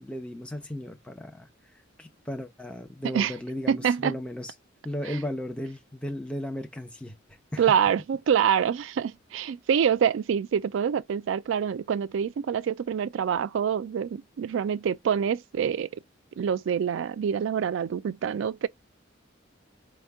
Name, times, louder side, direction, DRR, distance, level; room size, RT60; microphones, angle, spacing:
voice 1, 0.0-1.5 2.0-4.5 4.8-7.1 7.5-7.6, left 1 dB, 5° left, 0.6 m, -35 dB
voice 2, 3.7-4.2 5.1-5.2 7.6-15.9 16.4-18.7, right 8 dB, 70° right, 0.3 m, -26 dB
4.4 x 2.1 x 3.4 m
head